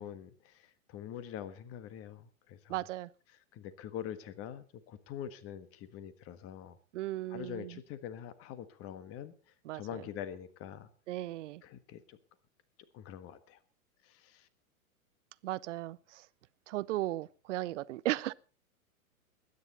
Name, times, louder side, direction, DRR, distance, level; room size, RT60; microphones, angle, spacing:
voice 1, 0.0-2.8 3.5-6.8 7.3-9.3 9.7-10.9 11.6-12.2 12.9-13.6 14.0-14.5, left 10 dB, 30° left, 1.5 m, -44 dB
voice 2, 2.7-3.1 6.9-7.8 9.6-10.0 11.1-11.6 15.4-16.3 16.7-18.3, right 15 dB, 55° right, 0.7 m, -36 dB
21.0 x 9.6 x 4.2 m
hypercardioid pair, 110°, 44 cm